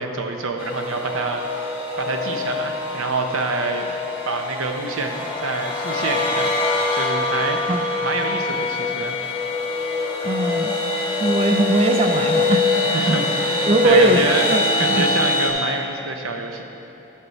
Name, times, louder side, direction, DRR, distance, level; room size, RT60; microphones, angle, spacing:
voice 1, 0.0-3.9 4.2-6.6 6.9-9.2 12.9-14.5 14.8-16.6, right 3 dB, 80° right, 4 dB, 0.8 m, -27 dB
sound 1, 0.6-15.5, left 3 dB, 25° left, 1.4 m, -24 dB
voice 2, 10.2-10.7 11.2-13.4 13.7-15.1, right 2 dB, 30° right, 5 dB, 0.3 m, -20 dB
11.5 x 6.1 x 4.1 m, 2.9 s
head